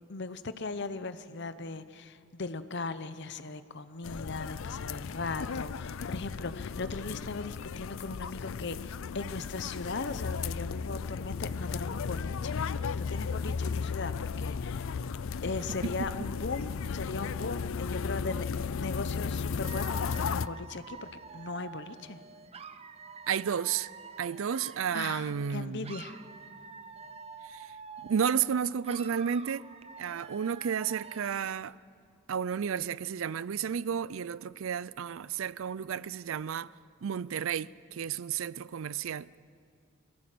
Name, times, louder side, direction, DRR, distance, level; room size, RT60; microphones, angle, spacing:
voice 1, 0.0-12.7 13.0-21.1 21.3-22.2 24.9-26.2, left 3 dB, 55° left, 0.9 m, -38 dB
sound 1, 4.0-20.5, left 5 dB, 70° left, 0.4 m, -35 dB
Dog / Alarm, 19.6-25.5 25.8-28.5 28.8-31.6, right 5 dB, 30° right, 0.6 m, -47 dB
voice 2, 23.3-23.9 24.2-26.0 27.5-27.7 28.1-29.6 30.0-31.7 32.3-36.7 37.0-39.3, right 7 dB, 75° right, 0.4 m, -32 dB
22.5 x 16.5 x 7.7 m
head